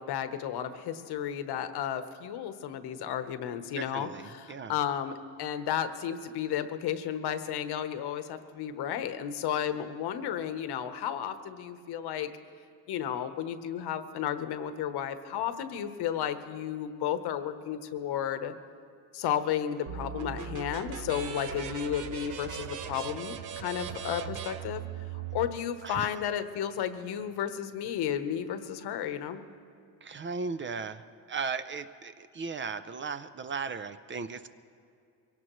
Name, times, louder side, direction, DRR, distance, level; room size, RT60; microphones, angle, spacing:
voice 1, 0.0-12.3 12.9-18.5 19.1-24.8 25.3-29.4, left 9 dB, 75° left, 10 dB, 1.0 m, -33 dB
voice 2, 3.8-4.7 25.8-26.1 30.0-34.5, right 5 dB, 30° right, 12 dB, 0.4 m, -37 dB
sound 1, 19.9-25.5, right 8 dB, 50° right, 0.9 m, -39 dB
23.0 x 18.0 x 3.1 m, 2.4 s
cardioid pair, 130°, 40 cm